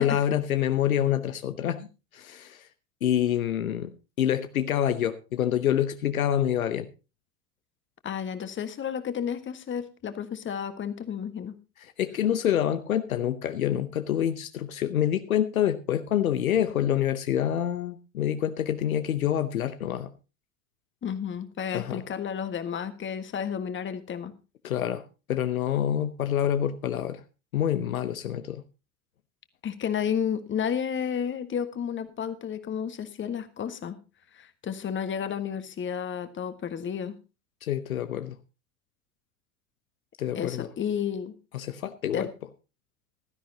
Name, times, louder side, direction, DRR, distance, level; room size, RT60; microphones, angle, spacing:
voice 1, 0.0-2.7 3.0-3.9 4.2-6.9 12.0-20.1 21.7-22.0 24.6-25.0 25.3-27.2 27.5-28.6 37.6-38.4 40.2-40.7 41.5-42.3, left 10 dB, 75° left, 10 dB, 0.9 m, -27 dB
voice 2, 8.0-11.5 21.0-24.3 29.6-34.0 34.3-37.1 40.3-41.3 42.1-42.3, left 8 dB, 25° left, 10 dB, 1.6 m, -31 dB
16.0 x 12.5 x 2.8 m, 0.30 s
figure-of-eight pair, 70°, 42 cm